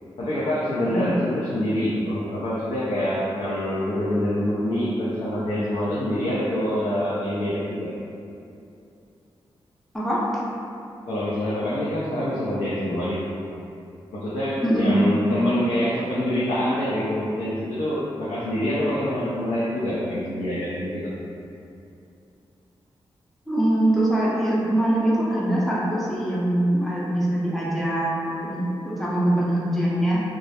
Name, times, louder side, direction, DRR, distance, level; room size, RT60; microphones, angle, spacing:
voice 1, 0.2-7.9 11.1-13.3 14.1-21.2, left 1 dB, 80° left, -9 dB, 0.4 m, -25 dB
voice 2, 9.9-10.4 14.6-15.0 23.5-30.2, right 1 dB, ahead, -7 dB, 0.5 m, -23 dB
2.2 x 2.0 x 2.7 m, 2.7 s
cardioid pair, 70°, 10 cm